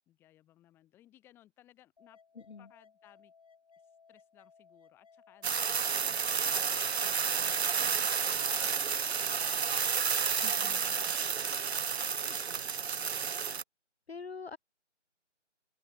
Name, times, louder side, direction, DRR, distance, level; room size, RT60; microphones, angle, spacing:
voice 1, 0.0-2.2 2.6-3.3 3.8-10.2 10.6-13.3, left 13 dB, 5° left, 6.7 m, -62 dB
sound 1, 2.0-12.0, left 5 dB, 30° left, 2.6 m, -61 dB
sound 2, 5.4-13.6, right 6 dB, 60° right, 0.5 m, -31 dB
voice 2, 10.4-10.8 14.1-14.6, left 5 dB, 55° left, 0.8 m, -44 dB
open air
figure-of-eight pair, 165°, 37 cm